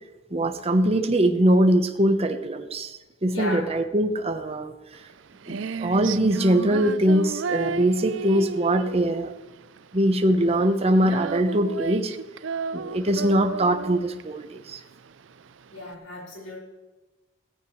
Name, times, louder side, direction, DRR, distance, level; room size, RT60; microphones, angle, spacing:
voice 1, 0.3-4.7 5.5-9.3 9.9-12.1 12.7-14.8, right 1 dB, 30° right, 6 dB, 0.9 m, -22 dB
voice 2, 3.3-3.7 15.7-16.6, left 1 dB, 85° left, -3 dB, 5.7 m, -35 dB
Female singing, 4.9-15.9, right 4 dB, 65° right, 0.5 m, -33 dB
17.5 x 14.5 x 3.2 m, 1.2 s
head